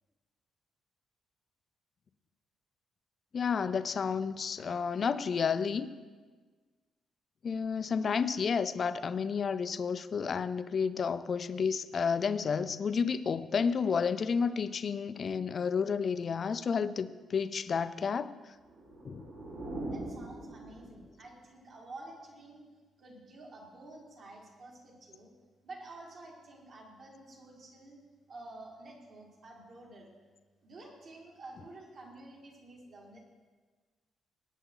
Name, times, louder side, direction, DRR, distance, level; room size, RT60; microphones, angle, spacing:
voice 1, 3.3-5.9 7.4-18.3 19.0-19.3, left 6 dB, 35° left, 13 dB, 0.4 m, -31 dB
sound 1, 18.6-21.3, right 2 dB, 65° right, 3.8 m, -42 dB
voice 2, 19.9-22.7 23.0-25.3 25.6-28.0 28.3-30.1 30.6-33.2, right 2 dB, 45° right, -2 dB, 2.4 m, -50 dB
17.5 x 9.1 x 3.9 m, 1.4 s
cardioid pair, 165°, 0 cm